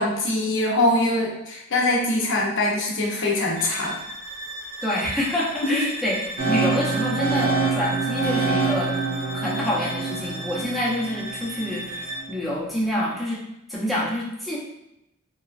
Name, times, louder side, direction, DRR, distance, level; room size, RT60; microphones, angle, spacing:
voice 1, 0.0-4.0 5.7-5.9, left 2 dB, 55° left, -1 dB, 0.6 m, -23 dB
sound 1, 3.6-12.4, right 1 dB, 40° right, 0.7 m, -36 dB
voice 2, 4.8-9.0 9.3-13.4 13.7-14.6, left 1 dB, ahead, -6 dB, 0.6 m, -27 dB
sound 2, 6.4-12.3, right 4 dB, 80° right, 0.9 m, -26 dB
3.0 x 2.4 x 2.4 m, 0.89 s
head